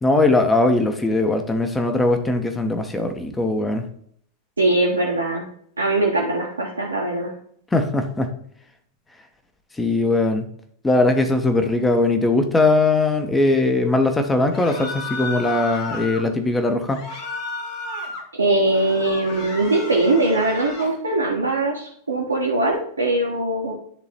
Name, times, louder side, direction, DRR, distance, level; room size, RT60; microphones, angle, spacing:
voice 1, 0.0-3.8 7.7-8.3 9.7-10.5 10.8-17.1, left 2 dB, 10° left, 6 dB, 1.2 m, -20 dB
voice 2, 4.6-5.4 5.8-7.3 18.3-23.7, right 2 dB, 80° right, -3 dB, 1.3 m, -21 dB
sound 1, 14.5-16.2 16.9-18.2 18.6-21.0, left 3 dB, 45° left, 1.9 m, -32 dB
10.5 x 4.0 x 4.4 m, 0.63 s
figure-of-eight pair, 90°, 0 cm